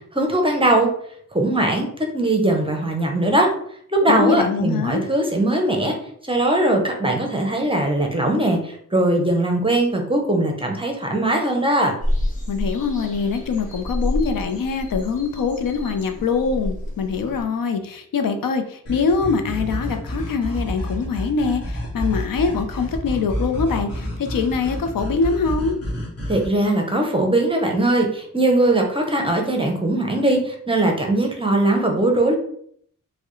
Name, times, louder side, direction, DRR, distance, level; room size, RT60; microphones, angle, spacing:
voice 1, 0.1-0.9 1.3-1.9 2.1-3.5 3.9-5.9 6.3-11.9 26.3-32.3, right 1 dB, 15° right, 2 dB, 0.5 m, -20 dB
voice 2, 4.1-5.0 12.5-25.8, left 5 dB, 85° left, 6 dB, 0.6 m, -23 dB
sound 1, 12.0-17.4, left 1 dB, 25° left, 0.8 m, -28 dB
sound 2, 18.9-26.5, equal, 45° left, 1.3 m, -29 dB
4.6 x 2.1 x 3.0 m, 0.64 s
wide cardioid pair, 175°, 33 cm